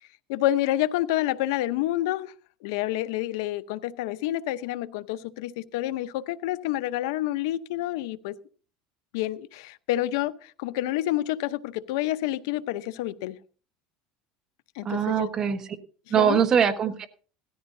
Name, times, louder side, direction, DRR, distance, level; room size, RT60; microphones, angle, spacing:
voice 1, 0.0-2.3 2.6-8.3 9.1-13.4 14.7-15.3 16.2-16.4, left 14 dB, 80° left, 0.8 m, -28 dB
voice 2, 14.8-15.6 16.1-17.1, right 8 dB, 30° right, 1.3 m, -22 dB
17.5 x 13.5 x 2.7 m
supercardioid pair, 140°, 2 cm